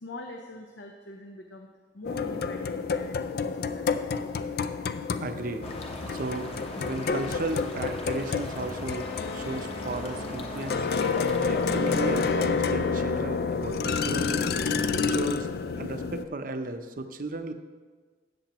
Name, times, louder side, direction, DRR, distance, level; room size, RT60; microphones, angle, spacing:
voice 1, 0.0-1.7 1.9-4.3, left 2 dB, 85° left, 3 dB, 0.8 m, -43 dB
sound 1, 2.0-16.2, left 5 dB, 55° left, 0.4 m, -29 dB
voice 2, 5.2-5.7 6.1-6.5 6.8-9.1 9.3-10.9 11.5-14.4 14.9-15.5 15.8-17.5, right 2 dB, 50° right, 8 dB, 0.6 m, -34 dB
sound 2, 5.6-12.3, left 1 dB, 35° left, 1.0 m, -38 dB
13.0 x 8.2 x 3.0 m, 1.4 s
head